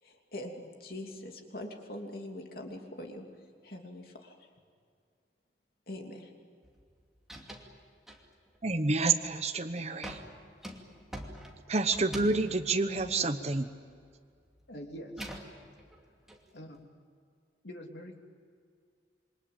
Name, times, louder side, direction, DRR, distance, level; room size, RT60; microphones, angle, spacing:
voice 1, 0.0-3.3 3.6-4.5 5.9-6.3, left 1 dB, 55° left, 2 dB, 3.0 m, -43 dB
sound 1, 6.6-6.9 7.2-7.7 8.1-8.6 9.0-9.4 10.0-14.1 14.4-16.4, equal, ahead, 2.6 m, -46 dB
voice 2, 8.6-10.2 11.7-13.7, right 3 dB, 35° right, 6 dB, 1.1 m, -28 dB
voice 3, 14.7-15.3 16.5-16.8 17.6-18.2, equal, 75° left, 2 dB, 3.4 m, -44 dB
27.5 x 24.0 x 8.8 m, 2.2 s
head